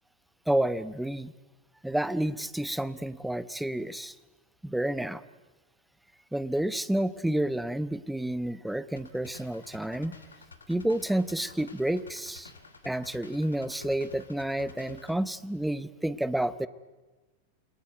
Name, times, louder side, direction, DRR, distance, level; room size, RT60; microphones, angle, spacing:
voice 1, 0.5-1.3 1.8-4.1 4.6-5.2 6.3-10.2 10.7-12.5 12.8-16.7, right 1 dB, 5° right, 16 dB, 1.0 m, -30 dB
sound 1, 9.0-15.2, left 3 dB, 75° left, 2.7 m, -50 dB
29.0 x 20.5 x 9.3 m, 1.2 s
figure-of-eight pair, 90°, 0 cm